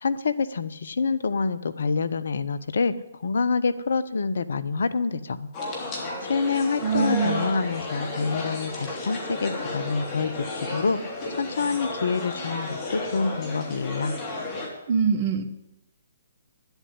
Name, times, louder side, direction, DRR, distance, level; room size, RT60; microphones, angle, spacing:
voice 1, 0.0-5.5 6.2-11.0 11.4-14.1, left 4 dB, 65° left, 14 dB, 0.8 m, -27 dB
sound 1, 5.5-14.7, left 2 dB, 30° left, 3.2 m, -33 dB
voice 2, 6.8-7.5 14.9-15.4, right 6 dB, 40° right, 9 dB, 1.3 m, -23 dB
11.0 x 8.1 x 9.7 m, 0.91 s
figure-of-eight pair, 130°, 0 cm